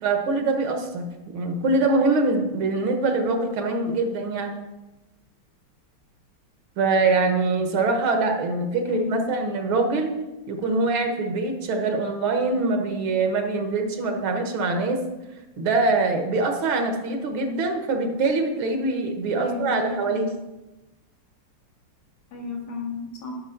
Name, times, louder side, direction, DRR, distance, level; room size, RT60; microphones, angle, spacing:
voice 1, 0.0-4.6 6.8-10.2 10.5-15.0 15.6-20.3, right 3 dB, 70° right, 4 dB, 1.8 m, -24 dB
voice 2, 8.9-9.2 19.4-20.2 22.3-23.4, left 4 dB, 90° left, -2 dB, 2.8 m, -33 dB
10.0 x 6.0 x 4.4 m, 1.0 s
omnidirectional pair, 2.4 m